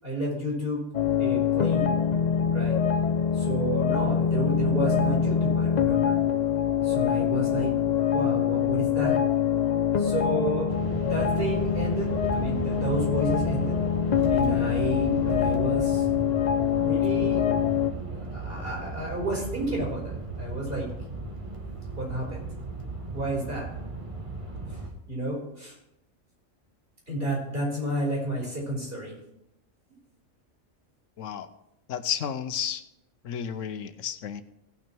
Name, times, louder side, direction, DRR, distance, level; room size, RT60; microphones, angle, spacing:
voice 1, 0.0-0.9 1.2-2.0 2.5-2.8 3.3-6.2 6.8-9.2 10.0-10.7 11.0-13.8 14.3-16.1 16.8-17.5 18.1-20.9 22.0-22.5 23.1-23.7 24.7-24.8 25.1-25.8 27.1-29.1, right 1 dB, 45° right, -3 dB, 4.4 m, -31 dB
sound 1, 0.9-17.9, left 8 dB, 45° left, 0.6 m, -25 dB
sound 2, 10.7-24.9, right 2 dB, 25° right, 1.4 m, -35 dB
voice 2, 31.2-31.5 31.9-32.8 33.2-34.4, left 8 dB, 75° left, 12 dB, 1.1 m, -32 dB
17.0 x 6.1 x 4.5 m, 0.83 s
omnidirectional pair, 1.3 m